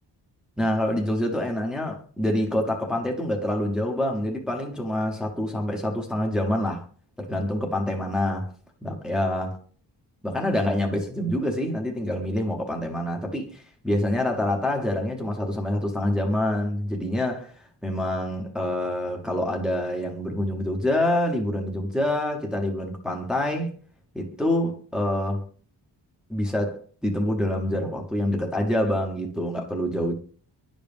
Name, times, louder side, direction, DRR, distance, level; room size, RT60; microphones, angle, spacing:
voice 1, 0.6-6.8 7.2-8.5 8.8-9.6 10.2-17.5 17.8-23.8 24.1-25.5 26.3-30.1, left 1 dB, ahead, 0.8 m, -26 dB
10.0 x 5.2 x 2.5 m
wide cardioid pair, 175°, 43 cm